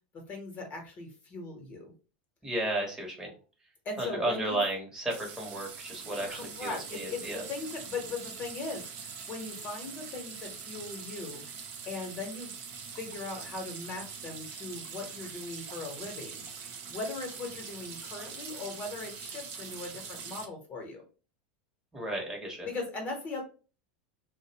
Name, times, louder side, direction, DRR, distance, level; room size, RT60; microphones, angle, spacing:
voice 1, 0.3-1.9 3.8-4.6 6.3-12.5 13.0-16.4 16.9-21.0 22.6-23.4, left 3 dB, 35° left, 1 dB, 0.9 m, -39 dB
voice 2, 2.4-3.3 4.0-7.4 21.9-22.7, right 1 dB, 10° right, -1 dB, 1.0 m, -33 dB
sound 1, 5.1-20.5, right 6 dB, 50° right, 0.6 m, -43 dB
2.5 x 2.0 x 2.8 m, 0.35 s
hypercardioid pair, 110°, 5 cm